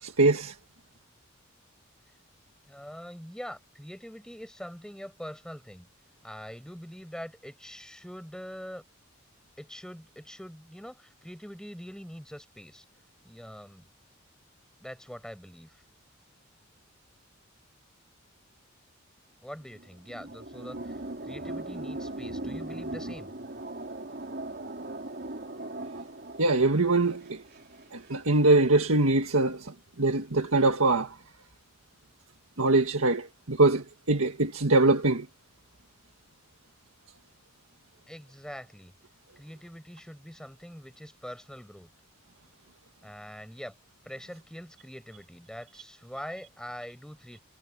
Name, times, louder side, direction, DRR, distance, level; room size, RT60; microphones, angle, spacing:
voice 1, 0.0-0.5 26.4-27.4 27.9-31.1 32.6-35.3, right 2 dB, 80° right, 1.8 m, -23 dB
voice 2, 2.6-5.9 6.2-8.8 9.6-12.9 13.2-13.9 14.8-15.8 19.4-23.3 38.1-38.9 39.4-41.9 43.0-43.8 44.0-47.4, equal, 5° left, 5.3 m, -43 dB
sound 1, 19.6-28.2, right 2 dB, 50° right, 3.4 m, -39 dB
head